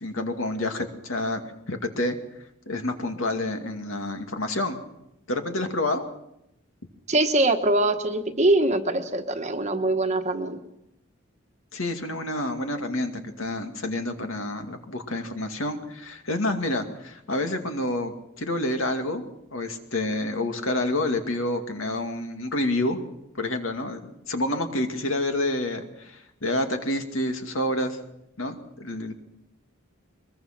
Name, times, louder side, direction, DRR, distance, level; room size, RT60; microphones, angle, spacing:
voice 1, 0.0-2.2 2.7-4.8 5.3-6.0 11.7-19.2 19.5-23.1 23.3-28.0 28.4-29.1, left 1 dB, 70° left, 5 dB, 2.3 m, -28 dB
voice 2, 7.1-10.6, right 2 dB, 35° right, 6 dB, 1.2 m, -23 dB
22.5 x 22.0 x 6.0 m, 0.83 s
head